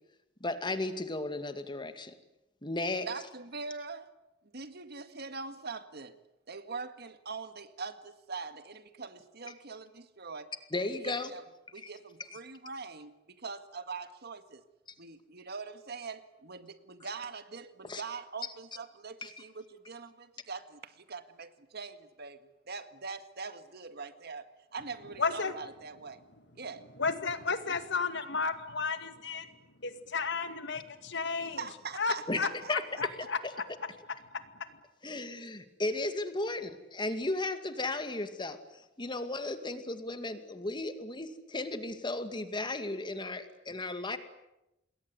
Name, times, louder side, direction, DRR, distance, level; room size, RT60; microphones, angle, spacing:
voice 1, 0.4-2.1 2.6-3.1 10.7-11.3 11.8-11.9 12.3-12.4 17.8-18.0 19.2-19.3 32.3-32.4 32.7-33.1 33.4-33.5 35.0-44.2, left 2 dB, 25° left, 2.3 m, -35 dB
voice 2, 3.1-4.1 4.5-6.2 6.5-11.4 11.7-14.6 15.0-22.4 22.7-26.2 26.6-26.9 31.4-32.7, right 4 dB, 55° right, 1.9 m, -43 dB
voice 3, 25.2-25.5 27.0-29.5 29.8-31.6 32.0-32.5 33.0-33.4 34.3-34.4, left 4 dB, 65° left, 2.2 m, -32 dB
27.5 x 21.5 x 9.5 m
head